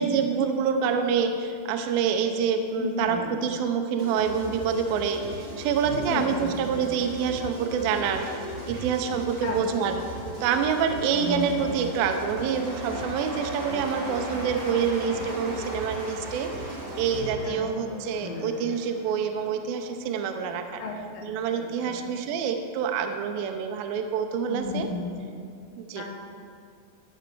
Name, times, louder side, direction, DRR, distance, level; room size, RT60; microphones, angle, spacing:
voice 1, 0.0-10.0 10.4-20.8 21.2-24.9 25.8-26.0, right 7 dB, 85° right, 6 dB, 2.1 m, -27 dB
voice 2, 2.8-3.5 6.1-6.6 9.4-10.0 11.1-11.6 17.4-17.6 17.8-18.7 20.8-21.2 21.5-22.1 24.5-25.3 25.9-26.0, left 3 dB, 70° left, -1 dB, 1.6 m, -34 dB
sound 1, 4.0-17.5, right 1 dB, 55° right, 3.6 m, -38 dB
Cheering / Applause / Crowd, 7.3-20.4, equal, 40° right, 3.6 m, -42 dB
13.5 x 6.0 x 4.6 m, 2.3 s
omnidirectional pair, 4.9 m